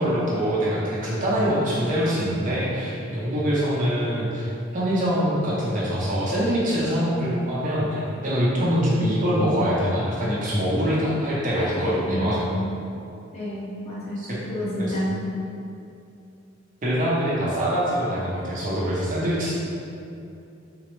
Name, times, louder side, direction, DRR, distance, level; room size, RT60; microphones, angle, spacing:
voice 1, 0.0-12.4 14.2-14.4 14.8-14.9 16.8-19.5, equal, 45° right, -7 dB, 0.7 m, -24 dB
voice 2, 12.0-12.6 13.3-15.2, equal, 35° left, -8 dB, 0.8 m, -30 dB
3.8 x 2.0 x 3.0 m, 2.6 s
head